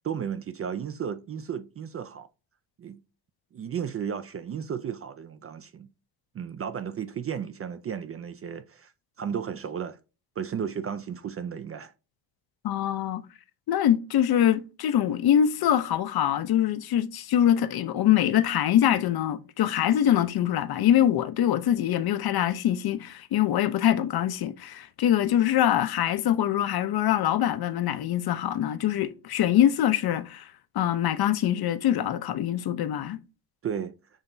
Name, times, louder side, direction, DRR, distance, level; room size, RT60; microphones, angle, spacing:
voice 1, 0.0-2.3 2.8-3.0 3.5-5.9 6.3-8.9 9.2-10.0 10.4-11.9 33.6-34.0, right 7 dB, 30° right, 0.4 m, -34 dB
voice 2, 12.6-13.3 13.7-33.2, left 11 dB, 50° left, 0.6 m, -24 dB
7.2 x 2.8 x 2.6 m
supercardioid pair, 60°, 48 cm